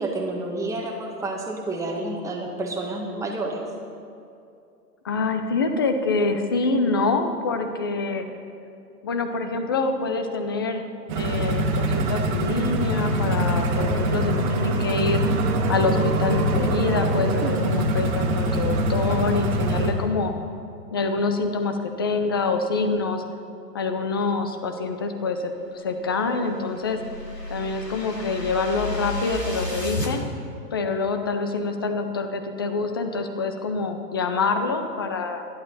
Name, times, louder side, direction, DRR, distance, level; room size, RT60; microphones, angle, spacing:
voice 1, 0.0-3.6, right 2 dB, 5° right, -1 dB, 1.7 m, -29 dB
voice 2, 5.0-8.3 9.0-10.8 11.1-15.2 15.7-20.3 20.9-23.2 23.7-27.0 27.5-30.2 30.7-35.5, left 3 dB, 15° left, 7 dB, 0.4 m, -26 dB
sound 1, 11.1-19.9, right 1 dB, 25° right, 1.9 m, -23 dB
sound 2, 13.6-17.5, right 5 dB, 55° right, 1.9 m, -34 dB
sound 3, 26.1-30.1, left 1 dB, 85° left, 3.0 m, -33 dB
29.5 x 11.0 x 4.1 m, 2.6 s
figure-of-eight pair, 115°, 49 cm